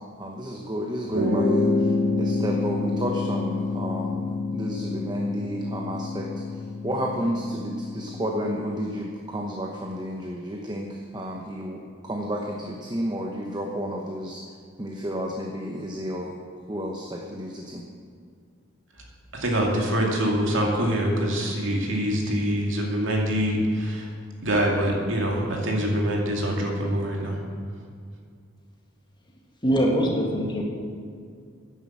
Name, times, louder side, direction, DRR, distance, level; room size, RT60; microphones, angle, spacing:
voice 1, 0.0-1.9 2.2-14.4 14.8-16.3 16.7-17.8, equal, 20° right, 1 dB, 1.0 m, -31 dB
sound 1, 1.1-8.8, left 3 dB, 90° right, 3.0 m, -27 dB
voice 2, 19.3-24.1 24.4-27.4, equal, 65° right, 0 dB, 2.6 m, -24 dB
voice 3, 29.6-30.6, equal, 25° left, -1 dB, 2.0 m, -22 dB
10.5 x 9.5 x 7.4 m, 2.2 s
head